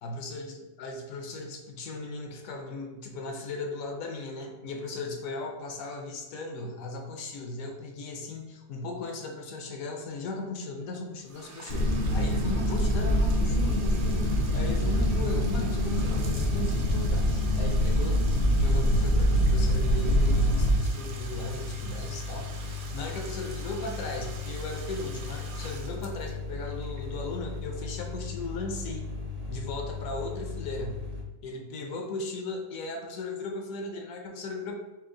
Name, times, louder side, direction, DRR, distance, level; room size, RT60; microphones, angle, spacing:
voice 1, 0.0-29.1 29.5-31.0 31.4-34.7, left 2 dB, 75° left, 2 dB, 1.0 m, -37 dB
Bathtub (filling or washing), 11.2-28.0, right 3 dB, 70° right, 0.5 m, -46 dB
sound 1, 11.7-20.7, equal, 50° left, 0.6 m, -24 dB
sound 2, 14.7-31.2, left 4 dB, 55° right, 0.9 m, -37 dB
4.4 x 2.0 x 3.7 m, 1.1 s
omnidirectional pair, 1.5 m